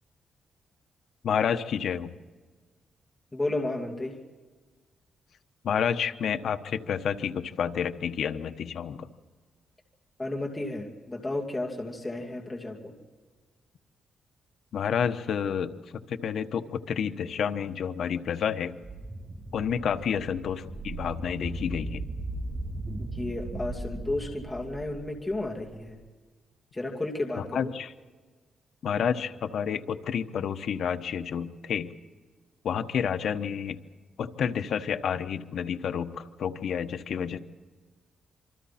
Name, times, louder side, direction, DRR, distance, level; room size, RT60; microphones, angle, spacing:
voice 1, 1.2-2.1 5.6-9.1 14.7-18.7 19.5-22.0 27.5-27.9 28.8-31.9 32.6-33.8 34.2-37.4, left 7 dB, 70° left, 9 dB, 1.1 m, -29 dB
voice 2, 3.3-4.2 10.2-12.9 23.0-26.0 26.7-27.7, left 2 dB, 20° left, 1 dB, 2.7 m, -33 dB
sound 1, 18.8-25.9, right 2 dB, 20° right, 2.9 m, -37 dB
27.0 x 25.0 x 4.3 m, 1.4 s
cardioid pair, 115°, 0 cm